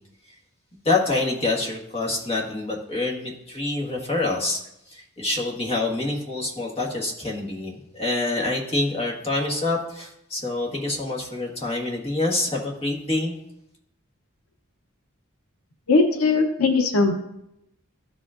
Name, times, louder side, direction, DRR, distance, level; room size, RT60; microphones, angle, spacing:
voice 1, 0.8-4.6 4.9-13.4, left 2 dB, 30° left, -2 dB, 1.4 m, -26 dB
voice 2, 15.9-17.1, left 3 dB, 80° left, 5 dB, 0.8 m, -19 dB
13.0 x 4.8 x 2.5 m, 0.81 s
head